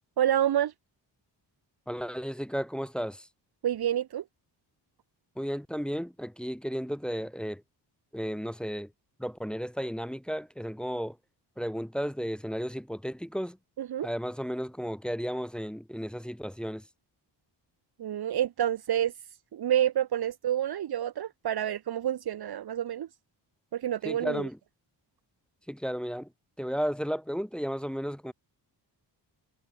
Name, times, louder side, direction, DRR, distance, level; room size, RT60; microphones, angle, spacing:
voice 1, 0.2-0.7 3.6-4.2 13.8-14.1 18.0-19.1 19.5-23.1 23.7-24.5, right 11 dB, 60° right, 1.2 m, -28 dB
voice 2, 1.9-3.3 5.4-7.6 8.1-8.9 9.2-11.2 11.6-13.6 14.0-16.8 24.0-24.6 25.7-26.3 26.6-28.3, equal, ahead, 1.1 m, -33 dB
wide cardioid pair, 145°, 42 cm